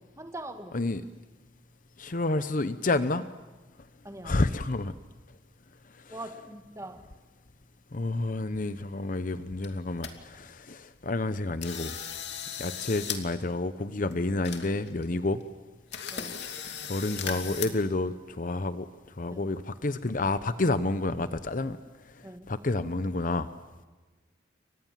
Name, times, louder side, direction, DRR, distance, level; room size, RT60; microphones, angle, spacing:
voice 1, 0.2-0.7 4.0-4.4 6.1-7.1 16.1-16.4 19.3-19.4 22.2-22.5, right 1 dB, 15° right, 7 dB, 1.9 m, -42 dB
voice 2, 0.7-1.0 2.0-3.3 4.2-4.9 6.1-6.2 7.9-12.0 12.6-15.4 16.9-18.9 19.2-21.8 22.5-23.5, left 2 dB, 45° left, 12 dB, 0.8 m, -29 dB
sound 1, 9.6-10.1 10.6-10.7 11.1-11.3 11.6-13.2 13.5-13.6 14.1-14.2 14.4-15.0 15.4-15.5 15.9-17.7, left 8 dB, 70° left, 2.8 m, -37 dB
29.5 x 24.5 x 7.5 m, 1.3 s
head